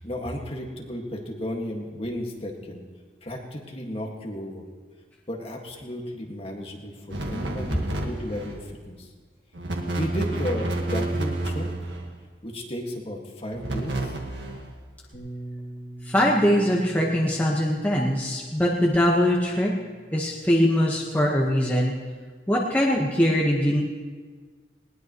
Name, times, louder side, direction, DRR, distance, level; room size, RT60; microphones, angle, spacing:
voice 1, 0.0-2.8 3.2-4.7 5.3-9.1 9.9-11.7 12.4-14.1, left 1 dB, 35° left, 0 dB, 1.9 m, -34 dB
sound 1, 7.1-8.7 9.5-12.2 13.5-14.7, right 1 dB, 85° right, 1.7 m, -30 dB
Bass guitar, 15.1-21.4, right 1 dB, 50° left, 2.8 m, -43 dB
voice 2, 16.0-19.7 20.1-21.9 22.5-23.8, equal, 10° left, -3 dB, 1.3 m, -22 dB
20.0 x 19.0 x 3.1 m, 1.5 s
head